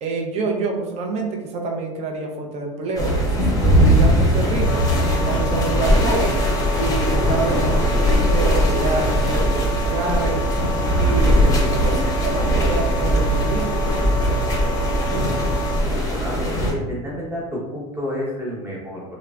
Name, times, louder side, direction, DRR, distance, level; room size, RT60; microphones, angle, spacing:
voice 1, 0.0-4.9 5.3-6.4 6.7-10.5 11.0-14.3 15.1-15.5, right 3 dB, 40° right, 1 dB, 0.5 m, -27 dB
sound 1, 3.0-16.7, equal, 20° left, 0.8 m, -19 dB
sound 2, 4.6-15.8, right 1 dB, 55° left, 0.4 m, -30 dB
voice 2, 15.9-19.0, left 1 dB, 15° right, -4 dB, 0.9 m, -30 dB
3.1 x 2.0 x 2.4 m, 1.1 s
supercardioid pair, 110°, 17 cm